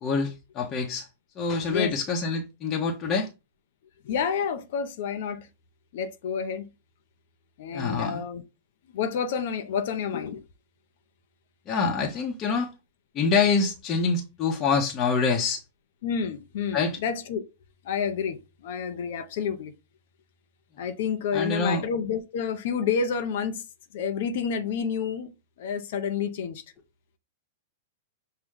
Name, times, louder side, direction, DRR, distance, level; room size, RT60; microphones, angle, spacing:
voice 1, 0.0-1.1 1.4-3.3 7.7-8.2 11.7-12.7 13.1-15.6 16.7-17.0 21.3-21.8, left 4 dB, 35° left, 0.9 m, -26 dB
voice 2, 4.0-5.5 5.9-6.7 7.6-8.4 8.9-10.4 16.0-17.4 17.8-19.7 20.8-23.6 23.9-25.3 25.6-26.6, left 6 dB, 65° left, 0.6 m, -29 dB
6.2 x 2.2 x 3.6 m
hypercardioid pair, 115°, 0 cm